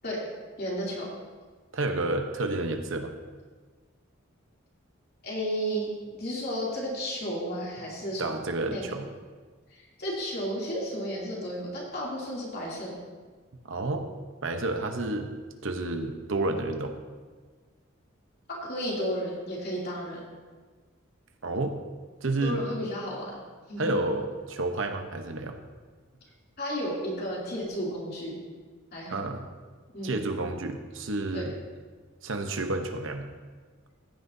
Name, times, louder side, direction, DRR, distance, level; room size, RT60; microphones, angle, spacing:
voice 1, 0.6-1.1 5.2-5.9 6.2-8.4 8.7-8.8 9.7-12.9 18.5-20.3 22.4-23.4 23.7-23.9 26.6-28.3 28.9-29.2 29.9-30.1 31.3-31.5, equal, 50° left, -5 dB, 2.9 m, -33 dB
voice 2, 1.7-3.1 8.2-9.1 13.6-14.1 14.4-15.3 15.6-17.0 21.4-21.8 22.2-22.6 23.8-25.6 29.1-29.5 30.0-31.5 32.2-33.3, right 2 dB, 70° right, 6 dB, 0.9 m, -30 dB
15.5 x 9.6 x 2.7 m, 1.5 s
head